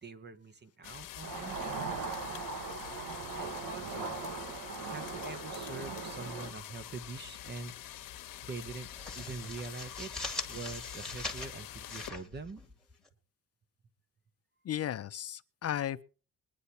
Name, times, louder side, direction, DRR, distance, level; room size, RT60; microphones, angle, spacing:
voice 1, 0.0-1.8 3.3-4.2 4.8-7.7 8.4-8.9 9.1-10.1 10.5-12.6, right 4 dB, 30° right, 1.0 m, -44 dB
sound 1, 0.8-12.1, left 12 dB, 70° left, 1.2 m, -46 dB
sound 2, 1.2-6.5, right 4 dB, 65° right, 1.7 m, -39 dB
sound 3, 6.9-7.7 8.0-8.2 8.6-13.1, left 2 dB, ahead, 2.1 m, -42 dB
voice 2, 14.7-16.0, left 11 dB, 45° left, 0.6 m, -35 dB
21.5 x 9.9 x 4.2 m
cardioid pair, 135°, 35 cm